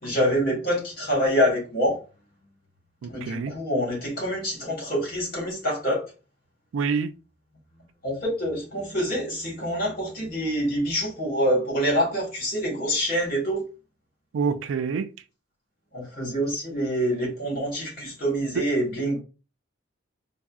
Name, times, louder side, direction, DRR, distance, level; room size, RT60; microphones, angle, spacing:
voice 1, 0.0-2.0 3.1-6.0 8.0-13.6 15.9-19.2, equal, 50° left, 1.4 m, -26 dB
voice 2, 3.0-3.5 6.7-7.1 14.3-15.1 18.6-18.7, right 5 dB, 90° right, 0.3 m, -26 dB
3.6 x 2.0 x 2.3 m
head